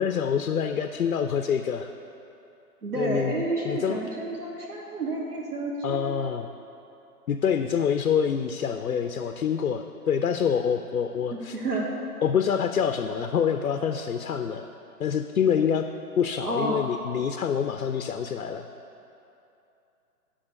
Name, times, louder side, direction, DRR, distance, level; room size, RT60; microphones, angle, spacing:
voice 1, 0.0-1.9 3.0-3.3 3.6-4.0 5.8-6.5 7.3-11.6 12.2-14.7 15.0-15.9 16.2-18.7, left 7 dB, 70° left, 7 dB, 0.6 m, -26 dB
voice 2, 2.8-6.1 11.3-11.9 16.4-16.8, right 2 dB, 80° right, -3 dB, 1.4 m, -30 dB
8.9 x 5.6 x 6.5 m, 2.8 s
figure-of-eight pair, 130°, 46 cm